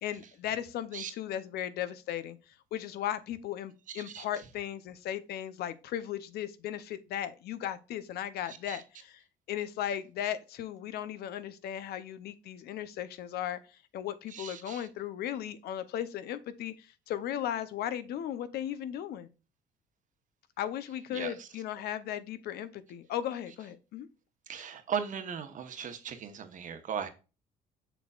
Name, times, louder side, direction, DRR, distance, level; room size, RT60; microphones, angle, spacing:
voice 1, 0.0-2.4 2.7-9.2 9.5-13.6 13.9-19.3 20.6-24.1, left 11 dB, 70° left, 0.7 m, -36 dB
voice 2, 3.9-4.2 8.5-8.8 14.3-14.9 21.1-21.5 24.5-27.1, right 7 dB, 50° right, 1.1 m, -38 dB
6.8 x 6.0 x 2.4 m
cardioid pair, 110°, 17 cm